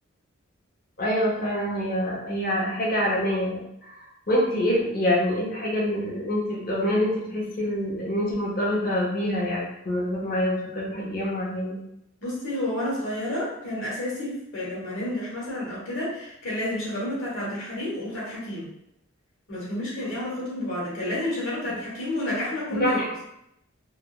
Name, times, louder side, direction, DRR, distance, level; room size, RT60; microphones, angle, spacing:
voice 1, 1.0-3.9 4.3-11.8 21.7-21.8 22.7-23.2, equal, 45° left, -4 dB, 0.7 m, -26 dB
voice 2, 12.2-18.7 19.5-23.0, left 1 dB, 70° left, -6 dB, 1.3 m, -30 dB
3.2 x 2.1 x 2.3 m, 0.80 s
head